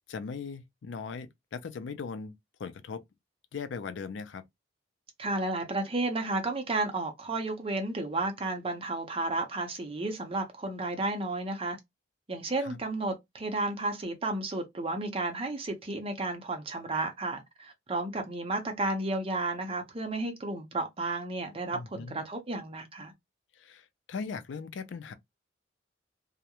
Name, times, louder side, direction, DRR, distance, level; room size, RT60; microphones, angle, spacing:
voice 1, 0.1-2.3 2.6-3.0 3.5-4.4 12.6-12.8 21.7-22.3 23.6-25.1, left 5 dB, 75° left, 0.4 m, -39 dB
voice 2, 5.2-11.8 12.3-23.1, right 2 dB, 30° right, 0.6 m, -32 dB
2.3 x 2.0 x 2.8 m
head